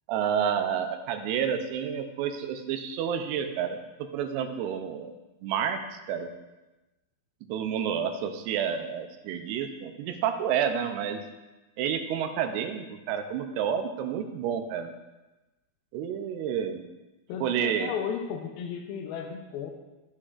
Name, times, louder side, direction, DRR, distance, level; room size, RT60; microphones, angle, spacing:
voice 1, 0.1-5.1 5.4-6.3 7.5-11.2 11.8-14.9 15.9-16.8 17.4-17.9, right 8 dB, 85° right, 7 dB, 2.7 m, -30 dB
voice 2, 17.3-19.7, left 7 dB, 80° left, 4 dB, 2.4 m, -34 dB
9.6 x 8.6 x 2.5 m, 1.1 s
omnidirectional pair, 4.6 m